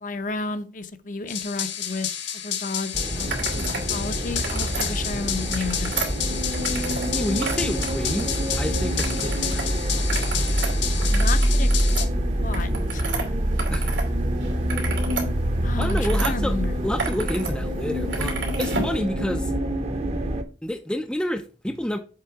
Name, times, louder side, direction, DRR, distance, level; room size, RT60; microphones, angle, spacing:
voice 1, 0.0-2.1 2.4-5.9 11.1-12.0 12.4-13.1 15.6-16.8, left 3 dB, 45° left, 0.7 m, -32 dB
sound 1, 1.3-12.1, left 9 dB, 85° left, 1.4 m, -31 dB
sound 2, 2.9-20.4, equal, 35° right, 0.8 m, -25 dB
sound 3, 3.3-3.9 4.2-4.9 5.4-7.1 7.4-8.6 9.0-9.6 10.0-14.1 14.4-16.3 16.8-17.5 17.8-19.0, right 4 dB, 85° right, 2.8 m, -32 dB
voice 2, 7.0-10.0 13.7-14.0 15.8-16.6 16.8-19.5 20.6-22.0, left 1 dB, 5° left, 0.4 m, -29 dB
7.6 x 3.7 x 5.7 m
head